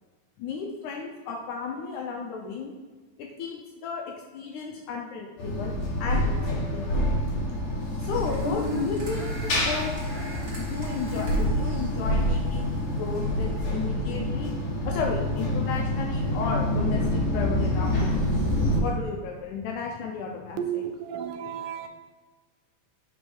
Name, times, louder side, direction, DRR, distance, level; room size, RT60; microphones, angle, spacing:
voice 1, 0.4-2.7 3.2-7.0 8.0-10.0 10.6-14.5 14.9-18.3 18.8-20.8 21.8-21.9, left 5 dB, 75° left, 1 dB, 1.9 m, -34 dB
sound 1, 5.4-18.8, left 1 dB, 55° left, 1.0 m, -27 dB
sound 2, 7.8-13.8, left 1 dB, 25° right, 1.6 m, -37 dB
voice 2, 20.6-21.9, right 9 dB, 85° right, 6 dB, 2.4 m, -32 dB
7.9 x 4.3 x 5.3 m, 1.3 s
omnidirectional pair, 3.9 m